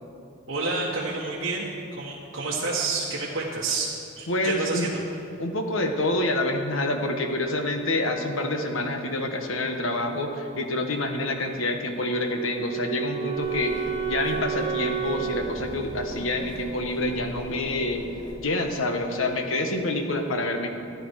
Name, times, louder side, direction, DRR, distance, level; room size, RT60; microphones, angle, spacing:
voice 1, 0.5-3.9 4.2-4.9, right 3 dB, 70° right, -6 dB, 1.6 m, -29 dB
voice 2, 4.3-4.9 5.4-18.0 18.4-20.7, left 2 dB, 75° left, 4 dB, 1.3 m, -27 dB
Wind instrument woodwind instrument, 12.0-17.0, right 8 dB, 30° right, 1.0 m, -32 dB
sound 1, 13.3-18.4, right 1 dB, 20° left, 2.8 m, -39 dB
14.5 x 10.5 x 4.8 m, 2.5 s
head